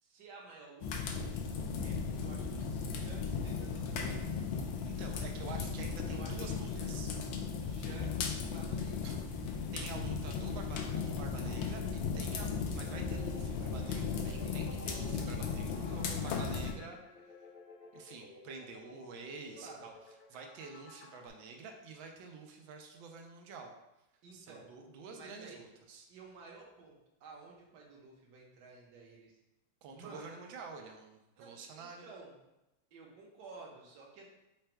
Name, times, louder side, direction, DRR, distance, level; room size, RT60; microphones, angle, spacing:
voice 1, 0.0-1.2 1.8-4.4 6.1-6.9 7.6-9.1 14.4-15.0 15.9-16.4 19.6-19.9 24.2-24.7 25.1-25.6 26.1-29.4 29.9-30.3 31.4-32.3 32.9-34.3, right 4 dB, 65° right, -2 dB, 1.4 m, -53 dB
sound 1, 0.8-16.7, left 5 dB, 85° left, 1.4 m, -36 dB
voice 2, 4.8-7.1 9.0-9.2 9.7-17.0 17.9-19.9 20.3-23.7 24.3-26.1 29.8-32.1, right 4 dB, 80° right, 3 dB, 1.4 m, -48 dB
sound 2, 12.8-21.3, left 3 dB, 70° left, 0.7 m, -53 dB
4.9 x 2.2 x 4.4 m, 0.93 s
omnidirectional pair, 2.1 m